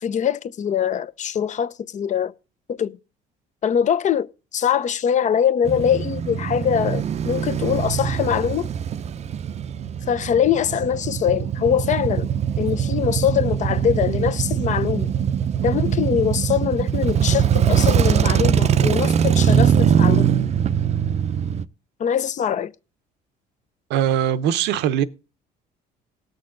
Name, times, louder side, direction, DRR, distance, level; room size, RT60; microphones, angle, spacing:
voice 1, 0.0-2.3 2.8-3.0 3.6-8.7 10.1-12.3 12.6-15.1 15.6-20.3 22.0-22.7, left 8 dB, 45° left, 0.6 m, -23 dB
Male speech man speaking / Motorcycle / Idling, 5.6-21.6, right 8 dB, 40° right, 0.5 m, -22 dB
voice 2, 23.9-25.0, right 10 dB, 85° right, 0.8 m, -21 dB
19.0 x 6.4 x 3.8 m
cardioid pair, 110°, 17 cm